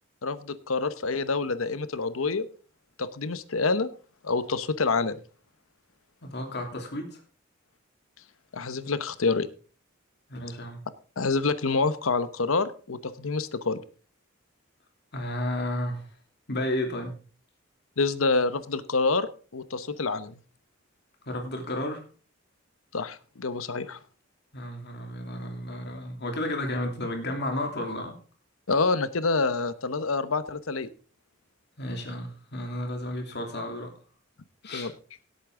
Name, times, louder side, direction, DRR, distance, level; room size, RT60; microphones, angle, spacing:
voice 1, 0.2-2.5 3.0-3.9 4.2-5.2 8.5-9.5 11.2-13.8 18.0-20.4 22.9-24.0 28.7-30.9 34.7-34.9, left 4 dB, 85° left, 14 dB, 0.9 m, -27 dB
voice 2, 6.2-7.2 10.3-10.8 15.1-16.1 16.5-17.2 21.3-22.1 24.5-28.2 31.8-33.9 34.6-34.9, left 1 dB, 55° left, 3 dB, 2.9 m, -32 dB
17.5 x 8.5 x 3.7 m, 0.38 s
head